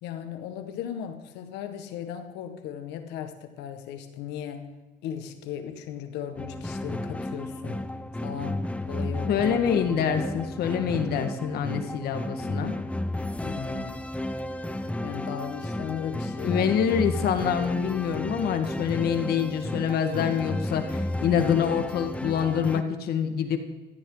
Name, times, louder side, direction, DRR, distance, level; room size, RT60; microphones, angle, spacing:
voice 1, 0.0-4.7 5.0-7.9 8.2-9.4 13.4-13.9 15.0-16.7, left 9 dB, 90° left, 7 dB, 1.7 m, -37 dB
sound 1, 6.3-22.8, left 1 dB, 5° left, 0.8 m, -33 dB
voice 2, 9.3-12.7 16.4-23.6, left 8 dB, 70° left, 7 dB, 1.8 m, -26 dB
16.0 x 14.0 x 4.0 m, 1.2 s
cardioid pair, 110°, 17 cm